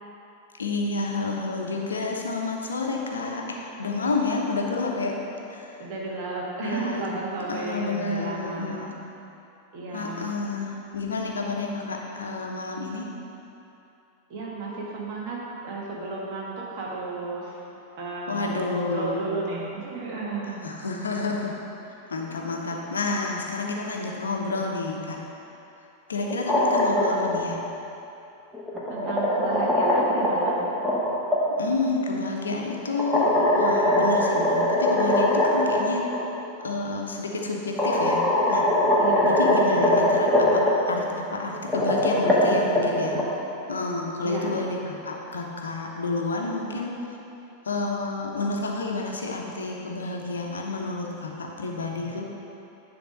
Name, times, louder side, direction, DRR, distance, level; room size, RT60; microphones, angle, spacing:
voice 1, 0.6-5.2 5.5-5.8 6.6-7.1 7.5-8.9 9.9-13.1 18.3-19.3 20.6-21.6 22.1-25.2 26.1-27.6 31.6-36.1 36.6-38.2 38.5-38.7 39.2-41.1 41.3-43.2 43.7-46.9 47.6-52.3, left 3 dB, 70° left, 0 dB, 0.8 m, -29 dB
voice 2, 5.8-8.9 9.7-10.3 14.3-17.6 18.0-20.6 28.9-30.6 39.0-39.4 44.2-44.6, right 3 dB, 45° right, -4 dB, 1.7 m, -33 dB
sound 1, 26.3-27.4 28.5-31.4 33.0-35.8 36.1-36.2 37.3-37.4 37.8-40.7 41.5-43.2, left 1 dB, 5° right, 1.4 m, -22 dB
10.0 x 3.5 x 5.3 m, 2.9 s
figure-of-eight pair, 90°, 0 cm